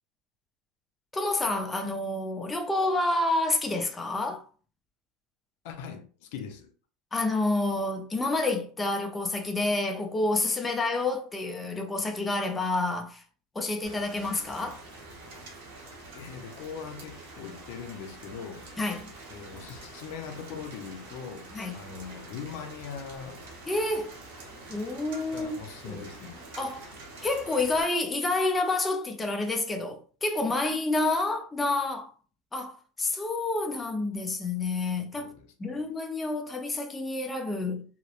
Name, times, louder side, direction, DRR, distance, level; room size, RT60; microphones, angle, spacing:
voice 1, 1.1-4.5 7.1-13.2 13.5-14.8 18.8-19.1 21.5-21.8 23.7-24.1 24.7-25.6 25.9-26.0 26.6-26.9 27.2-32.1 32.5-35.3 35.6-37.9, left 2 dB, 15° left, 0.4 m, -29 dB
voice 2, 5.6-6.7 16.1-18.7 19.3-23.5 25.3-26.5 35.2-35.8, left 6 dB, 70° left, 0.5 m, -41 dB
Rain, 13.8-27.8, right 2 dB, 80° right, 0.9 m, -46 dB
2.9 x 2.0 x 2.4 m
supercardioid pair, 130°, 0 cm